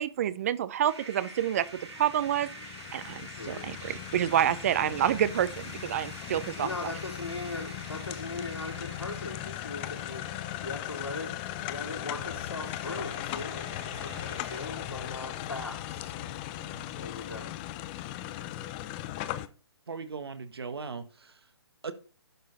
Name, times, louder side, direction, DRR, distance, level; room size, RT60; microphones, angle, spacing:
voice 1, 0.0-1.6 2.0-2.5 2.9-3.2 3.5-6.7, right 10 dB, 35° right, 0.5 m, -28 dB
sound 1, 0.8-14.7, right 2 dB, 80° right, 3.1 m, -47 dB
sound 2, 1.5-19.5, left 14 dB, 20° left, 0.5 m, -38 dB
voice 2, 3.4-3.7 4.7-5.1 6.6-11.3 11.6-16.2 16.9-17.5, left 3 dB, 85° left, 4.2 m, -39 dB
sound 3, 10.7-16.9, left 6 dB, 35° left, 2.1 m, -48 dB
voice 3, 19.9-21.4 21.8-21.9, right 5 dB, 65° right, 1.5 m, -38 dB
11.0 x 6.6 x 4.0 m
figure-of-eight pair, 140°, 14 cm